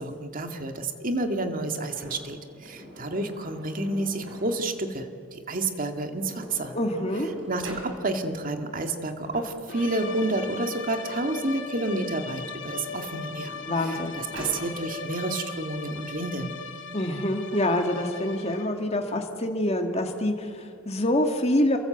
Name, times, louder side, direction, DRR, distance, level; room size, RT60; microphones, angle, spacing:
voice 1, 0.0-6.7 7.5-16.5, right 2 dB, 45° right, 5 dB, 2.2 m, -30 dB
Sliding door, 1.9-4.7 5.7-5.8 6.1-7.9 9.0-11.6 12.4-14.6, equal, 75° right, 7.2 m, -44 dB
voice 2, 6.7-7.3 13.7-14.1 16.9-21.8, left 1 dB, 30° left, 4 dB, 2.0 m, -26 dB
sound 1, 9.7-18.9, left 5 dB, 70° left, 2.4 m, -38 dB
28.5 x 23.0 x 8.0 m, 2.3 s
head